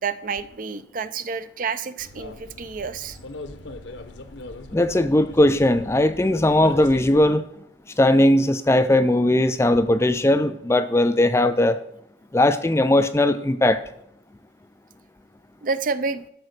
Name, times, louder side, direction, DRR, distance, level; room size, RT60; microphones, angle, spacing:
voice 1, 0.0-3.2 15.6-16.2, right 5 dB, 45° right, 13 dB, 0.5 m, -29 dB
sound 1, 2.0-7.3, left 2 dB, 65° left, 0.8 m, -39 dB
voice 2, 4.7-7.5 8.0-11.8 12.3-13.8, left 1 dB, 15° left, 11 dB, 0.4 m, -18 dB
12.5 x 5.0 x 6.5 m, 0.77 s
head